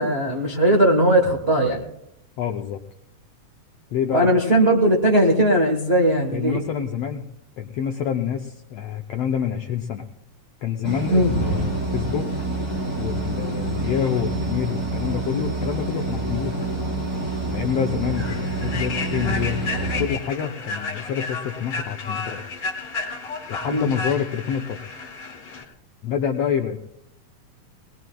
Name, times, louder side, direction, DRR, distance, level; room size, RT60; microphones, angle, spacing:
voice 1, 0.0-1.8 4.1-6.6 11.1-11.3 23.7-23.9, right 1 dB, 80° right, 0 dB, 0.5 m, -18 dB
voice 2, 2.4-2.8 3.9-4.3 6.3-7.2 7.6-10.0 10.6-12.3 13.0-16.6 17.5-22.4 23.5-25.0 26.0-26.8, left 8 dB, 80° left, 4 dB, 1.4 m, -27 dB
sound 1, 10.8-20.1, right 2 dB, 10° right, 2.7 m, -27 dB
Human voice / Train, 16.8-16.9 17.3-17.5 18.0-25.6, left 4 dB, 45° left, 2.8 m, -32 dB
21.0 x 19.5 x 2.3 m, 0.77 s
omnidirectional pair, 3.6 m